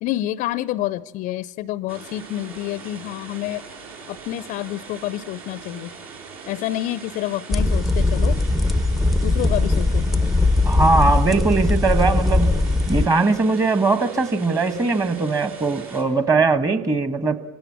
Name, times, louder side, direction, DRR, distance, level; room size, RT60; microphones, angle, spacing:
voice 1, 0.0-3.6 4.1-5.9 6.5-8.4 9.2-10.1, left 14 dB, 40° left, 0.6 m, -28 dB
sound 1, 1.9-16.0, right 5 dB, 65° right, 7.2 m, -41 dB
sound 2, 7.5-13.1, left 2 dB, ahead, 0.7 m, -19 dB
voice 2, 10.6-12.5 12.9-17.4, right 3 dB, 15° right, 1.3 m, -20 dB
25.5 x 16.5 x 7.3 m
figure-of-eight pair, 85°, 20 cm